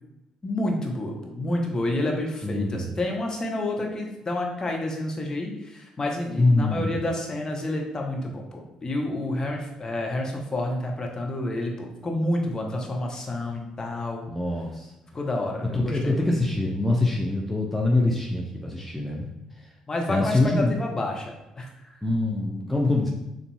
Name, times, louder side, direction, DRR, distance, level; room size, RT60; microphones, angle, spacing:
voice 1, 0.4-14.2 15.1-16.3 19.9-22.0, left 1 dB, 25° left, 0 dB, 1.0 m, -29 dB
voice 2, 2.4-2.9 6.4-7.0 14.3-14.9 15.7-19.3 19.6-19.7 20.1-20.7 22.0-23.1, left 2 dB, 5° left, -2 dB, 0.7 m, -24 dB
6.9 x 2.7 x 2.3 m, 0.91 s
figure-of-eight pair, 45°, 3 cm